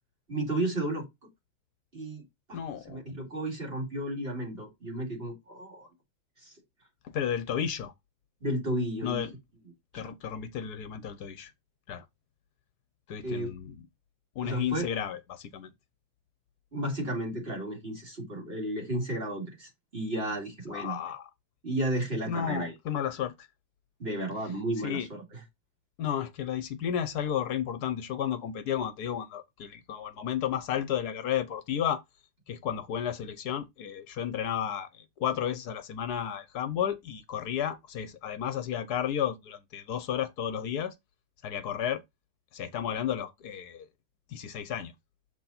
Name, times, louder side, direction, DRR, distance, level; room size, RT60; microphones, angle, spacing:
voice 1, 0.3-1.1 1.9-2.2 2.5-2.6 2.9-5.9 6.4-6.5 8.4-9.3 9.9-10.1 13.2-13.5 14.4-14.9 16.7-21.0 21.6-22.7 24.0-25.4, right 1 dB, 35° right, 2.7 m, -33 dB
voice 2, 2.5-3.0 7.0-7.9 9.0-9.4 9.9-11.5 11.9-12.0 13.1-13.8 14.4-15.7 20.7-21.3 22.3-23.5 24.8-25.1 26.0-32.0 32.5-34.9 35.2-40.9 41.4-42.0 42.5-43.9 44.3-44.9, left 9 dB, 70° left, 1.3 m, -32 dB
6.7 x 4.3 x 4.0 m
omnidirectional pair, 1.8 m